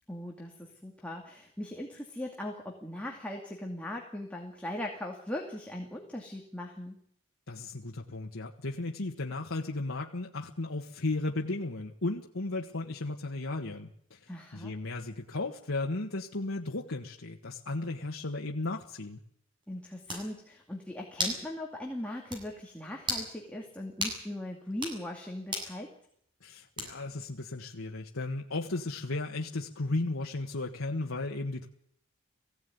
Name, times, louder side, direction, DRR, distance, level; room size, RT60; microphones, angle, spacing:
voice 1, 0.1-7.0 14.3-14.7 19.7-25.9, left 1 dB, 5° left, -1 dB, 2.5 m, -39 dB
voice 2, 7.5-19.2 26.4-31.7, left 2 dB, 75° left, 0 dB, 1.6 m, -35 dB
sound 1, 19.6-19.7 20.1-20.3 21.2-21.4 21.8-21.9 22.3-22.4 23.0-23.3 24.0-24.2 24.7-25.0 25.5-25.7 26.8-27.1, equal, 25° right, 7.5 m, -33 dB
20.0 x 16.5 x 9.5 m, 0.68 s
head